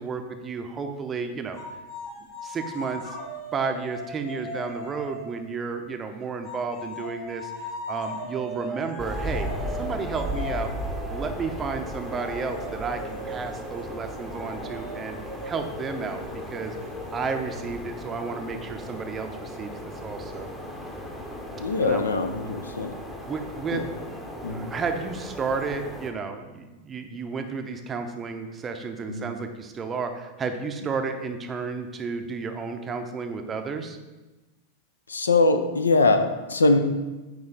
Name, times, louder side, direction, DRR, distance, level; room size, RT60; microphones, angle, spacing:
voice 1, 0.0-1.6 2.4-3.2 3.5-9.5 9.8-10.7 11.1-15.2 15.4-16.7 17.1-19.7 20.0-20.5 21.8-22.0 23.3-23.8 24.5-34.0, right 5 dB, 20° right, 6 dB, 0.6 m, -32 dB
sound 1, 1.6-5.5 6.4-17.8, left 1 dB, 40° left, 1.5 m, -39 dB
sound 2, 9.0-26.1, equal, 10° left, 0.8 m, -36 dB
voice 2, 21.6-23.0 23.7-23.8 24.4-24.7 29.1-29.3 35.1-36.8, left 3 dB, 75° left, 9 dB, 0.4 m, -22 dB
8.8 x 3.1 x 3.8 m, 1.1 s
figure-of-eight pair, 90°, 0 cm